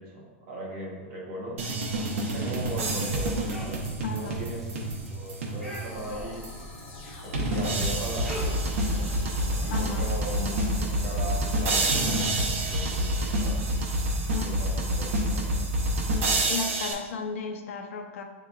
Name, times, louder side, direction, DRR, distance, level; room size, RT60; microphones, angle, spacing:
voice 1, 0.0-1.6 2.2-3.5 4.0-4.6 5.1-6.5 7.2-8.5 8.9-9.1 9.6-13.6 14.3-15.6, right 1 dB, 30° right, -4 dB, 0.9 m, -38 dB
sound 1, 1.6-13.2, equal, ahead, 0.5 m, -45 dB
sound 2, 1.6-6.0 6.4-6.5 7.3-16.9, right 1 dB, 80° right, 0.8 m, -28 dB
voice 2, 2.1-2.7 4.0-4.4 9.7-10.1 14.3-14.6 16.2-18.2, left 5 dB, 75° left, 5 dB, 0.4 m, -35 dB
sound 3, 5.6-15.9, left 2 dB, 60° left, 0.9 m, -44 dB
7.3 x 2.8 x 2.3 m, 1.3 s
supercardioid pair, 175°, 7 cm